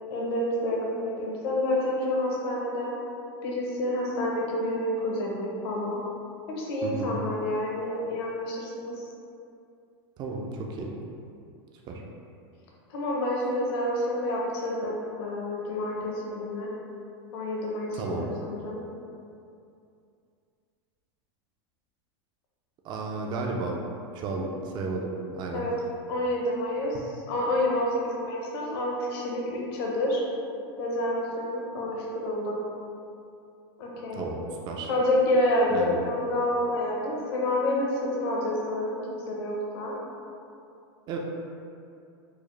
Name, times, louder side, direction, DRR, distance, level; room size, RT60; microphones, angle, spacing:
voice 1, 0.1-2.9 3.4-6.0 6.6-9.0 12.9-16.7 17.3-18.8 25.5-25.8 26.1-30.2 30.8-32.6 33.8-34.3 34.8-39.9, left 1 dB, 65° left, -3 dB, 0.8 m, -28 dB
voice 2, 6.8-7.1 10.2-10.9 11.9-12.0 17.9-18.3 22.8-23.8 24.1-25.6 34.1-34.4 34.6-34.9 35.7-36.0 41.1-41.2, right 3 dB, 35° right, 0 dB, 0.4 m, -33 dB
4.7 x 2.1 x 3.1 m, 2.5 s
supercardioid pair, 135°, 14 cm